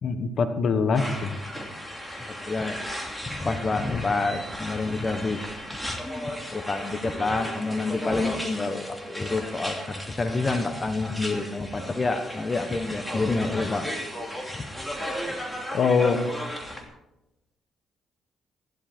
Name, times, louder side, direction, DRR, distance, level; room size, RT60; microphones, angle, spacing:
voice 1, 0.0-1.3 3.9-4.0 15.7-16.2, left 5 dB, 55° left, 9 dB, 1.4 m, -23 dB
sound 1, 0.9-16.8, equal, 5° left, 2.9 m, -35 dB
voice 2, 2.5-2.8 3.3-5.5 5.9-6.0 6.5-13.9 14.6-14.7, left 3 dB, 25° left, 7 dB, 1.2 m, -28 dB
15.0 x 12.0 x 4.5 m, 0.95 s
cardioid pair, 90°, 0 cm